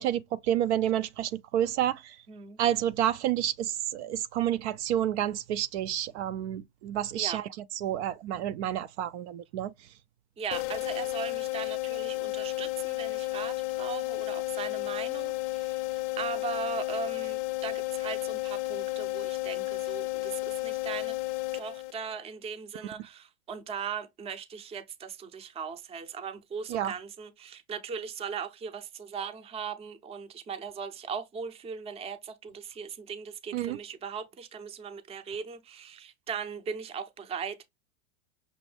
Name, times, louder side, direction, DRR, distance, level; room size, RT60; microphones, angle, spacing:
voice 1, 0.0-2.2 2.6-7.4 7.8-9.7 26.7-26.9 33.5-33.8, right 11 dB, 65° right, 0.5 m, -29 dB
voice 2, 2.3-2.6 7.2-7.4 10.4-21.2 21.5-37.6, right 6 dB, 15° right, 0.6 m, -39 dB
sound 1, 10.5-22.2, left 21 dB, 70° left, 0.5 m, -32 dB
6.2 x 2.6 x 3.3 m
supercardioid pair, 135°, 37 cm